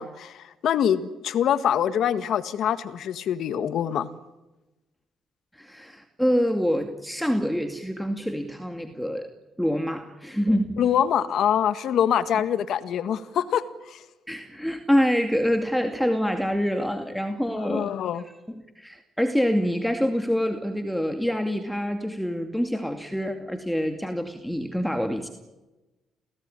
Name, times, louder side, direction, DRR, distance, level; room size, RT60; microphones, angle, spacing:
voice 1, 0.0-4.1 10.8-14.0 17.6-18.2, left 9 dB, 70° left, 12 dB, 1.7 m, -25 dB
voice 2, 5.5-9.3 9.6-10.8 14.3-17.9 18.5-25.3, equal, ahead, 6 dB, 2.4 m, -26 dB
28.0 x 17.5 x 10.0 m, 1.0 s
cardioid pair, 90°, 0 cm